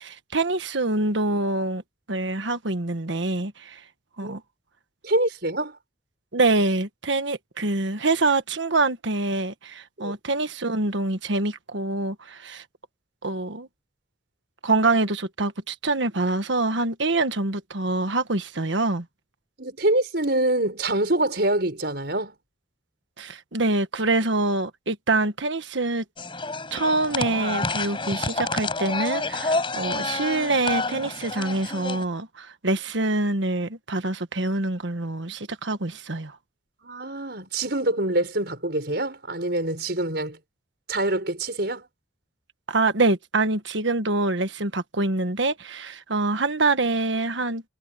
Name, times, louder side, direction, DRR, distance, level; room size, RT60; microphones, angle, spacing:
voice 1, 0.0-1.8 2.1-3.8 4.2-4.4 6.3-12.6 13.2-13.7 14.6-19.0 23.2-26.0 26.7-36.3 42.7-47.6, right 2 dB, 70° right, 1.5 m, -25 dB
voice 2, 5.0-5.8 10.0-10.2 19.6-22.3 36.8-40.4 40.9-41.9, right 1 dB, 55° right, 5.9 m, -25 dB
sound 1, 26.2-32.0, left 3 dB, 25° left, 6.1 m, -29 dB
head